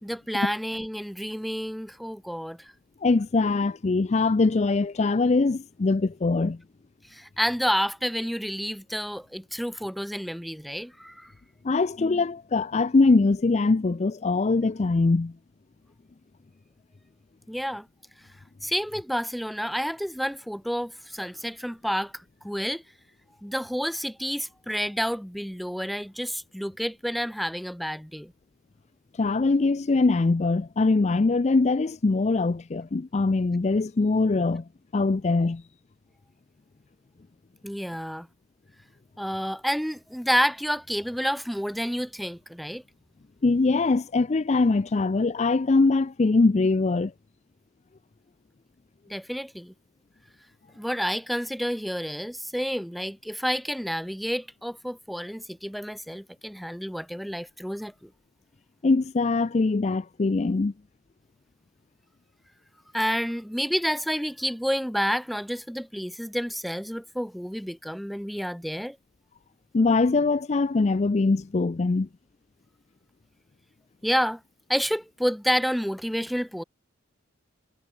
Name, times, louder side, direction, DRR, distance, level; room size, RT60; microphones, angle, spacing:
voice 1, 0.0-2.7 7.1-11.3 17.5-17.9 18.6-22.8 23.4-28.3 37.6-38.3 39.2-42.8 49.1-49.7 50.8-58.1 62.9-69.0 74.0-74.4 74.7-76.6, equal, ahead, 1.4 m, -29 dB
voice 2, 3.0-6.6 11.6-15.3 29.2-34.6 34.9-35.6 43.4-47.1 58.8-60.7 69.7-72.1, left 3 dB, 35° left, 0.4 m, -22 dB
head